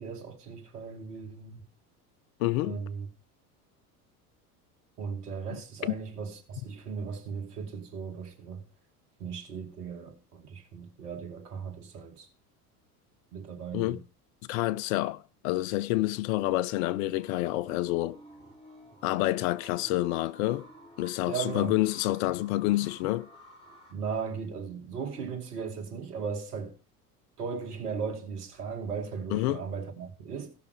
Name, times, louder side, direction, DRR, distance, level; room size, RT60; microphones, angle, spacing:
voice 1, 0.0-1.6 2.6-3.1 5.0-8.6 9.2-12.3 13.3-14.0 21.3-21.8 23.9-26.8 27.4-30.5, right 6 dB, 70° right, 2.3 m, -37 dB
voice 2, 2.4-2.8 5.5-6.0 13.7-14.0 14.5-18.2 19.0-20.7 21.0-23.3 29.3-29.6, left 17 dB, 60° left, 0.7 m, -28 dB
sound 1, 17.0-23.9, right 1 dB, 10° left, 4.2 m, -52 dB
16.0 x 5.9 x 4.8 m
hypercardioid pair, 75°, 47 cm